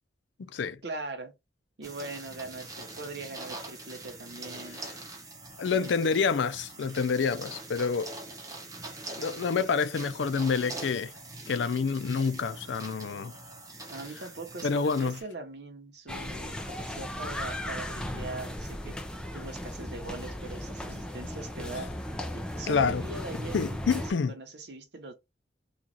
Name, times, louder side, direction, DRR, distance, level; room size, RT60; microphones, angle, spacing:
voice 1, 0.8-1.3 1.8-4.8 5.7-6.1 13.9-19.0 19.3-22.0 22.3-25.1, right 2 dB, 65° right, 0.9 m, -41 dB
sound 1, 1.8-15.2, right 2 dB, 20° right, 0.8 m, -44 dB
voice 2, 5.6-8.1 9.2-11.1 11.5-13.3 14.6-15.2 22.7-23.0 23.5-24.3, left 5 dB, 80° left, 0.4 m, -28 dB
sound 2, 16.1-24.1, left 1 dB, 5° left, 0.5 m, -36 dB
3.0 x 2.4 x 3.8 m
head